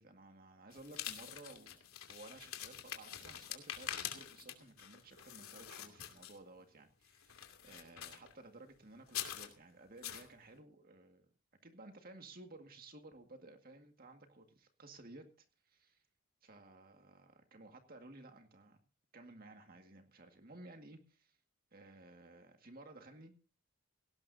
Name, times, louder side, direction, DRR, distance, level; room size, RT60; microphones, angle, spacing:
voice 1, 0.0-1.8 2.1-11.3 11.6-16.0 16.4-18.8 19.1-21.4 21.7-23.3, right 2 dB, 45° right, 5 dB, 2.0 m, -56 dB
sound 1, 0.7-6.6 7.1-8.3 9.0-9.5 10.0-10.3, left 10 dB, 90° left, 2.7 m, -45 dB
18.5 x 17.5 x 2.7 m, 0.34 s
head